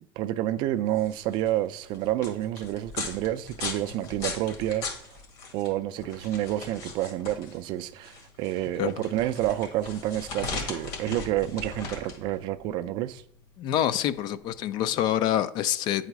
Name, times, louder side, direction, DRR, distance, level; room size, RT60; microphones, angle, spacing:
voice 1, 0.2-5.2 5.5-13.2, right 13 dB, 45° right, 0.3 m, -29 dB
sound 1, 0.8-15.3, left 4 dB, 60° left, 1.8 m, -39 dB
voice 2, 13.6-16.1, left 11 dB, 40° left, 0.3 m, -26 dB
8.9 x 4.0 x 4.7 m
cardioid pair, 170°, 11 cm